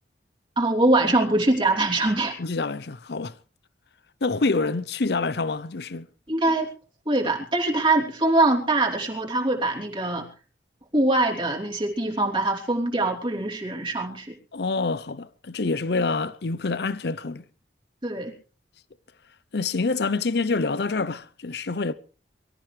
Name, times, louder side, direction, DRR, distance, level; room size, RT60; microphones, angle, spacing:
voice 1, 0.6-2.4 6.3-6.7 7.0-10.3 10.9-14.3 18.0-18.3, right 2 dB, 30° right, 3.2 m, -23 dB
voice 2, 2.4-3.4 4.2-6.1 14.5-17.4 19.5-21.9, left 3 dB, 65° left, 0.7 m, -26 dB
24.0 x 13.5 x 3.4 m
head